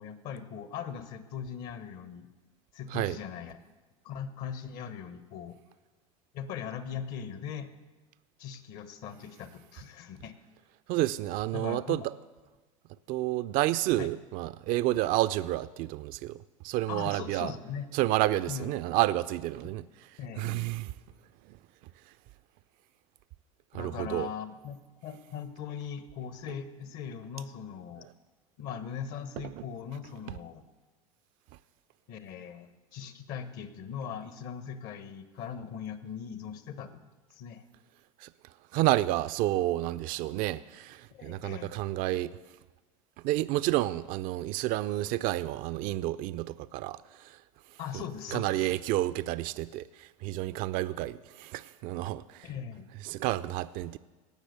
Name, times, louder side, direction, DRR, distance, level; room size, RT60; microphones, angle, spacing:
voice 1, 0.0-2.3 2.7-3.6 4.0-5.6 6.3-7.7 8.4-10.3 11.5-12.0 14.0-14.1 16.9-17.9 18.5-18.8 20.2-20.7 23.7-28.1 28.6-30.6 32.1-37.0 37.3-37.6 41.1-41.7 47.8-48.7 52.4-52.9, left 7 dB, 55° left, 1.1 m, -40 dB
voice 2, 10.9-12.1 13.1-16.4 16.6-17.5 17.9-19.9 20.4-20.9 21.5-21.6 23.7-24.3 29.5-29.6 38.2-38.3 38.7-42.4 43.2-47.4 47.9-48.0 48.3-52.5 53.0-54.0, right 16 dB, 50° right, 0.4 m, -30 dB
18.0 x 6.3 x 6.7 m
hypercardioid pair, 85°, 18 cm